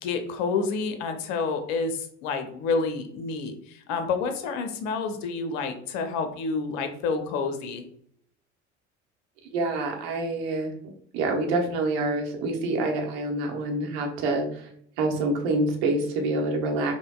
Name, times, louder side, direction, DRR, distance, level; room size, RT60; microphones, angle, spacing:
voice 1, 0.0-7.8, left 4 dB, 50° left, 7 dB, 0.7 m, -29 dB
voice 2, 9.5-10.7 11.1-14.7 15.0-16.9, right 2 dB, 55° right, 2 dB, 0.9 m, -26 dB
5.0 x 2.1 x 2.3 m, 0.66 s
figure-of-eight pair, 65°, 37 cm